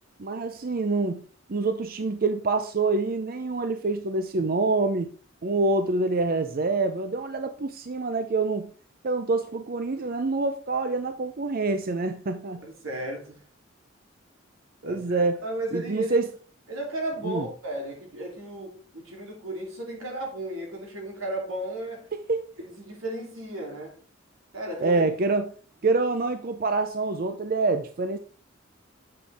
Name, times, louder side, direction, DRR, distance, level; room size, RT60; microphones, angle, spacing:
voice 1, 0.2-1.2 1.5-5.1 5.4-8.7 9.0-12.6 14.8-15.4 15.7-16.3 17.2-17.5 22.3-22.4 24.8-25.4 25.8-28.2, right 3 dB, 45° right, 0.5 m, -26 dB
voice 2, 12.6-13.4 14.8-16.2 16.7-22.1 22.6-24.0 24.5-25.0, right 1 dB, 90° right, 2.8 m, -34 dB
7.6 x 6.2 x 3.3 m
head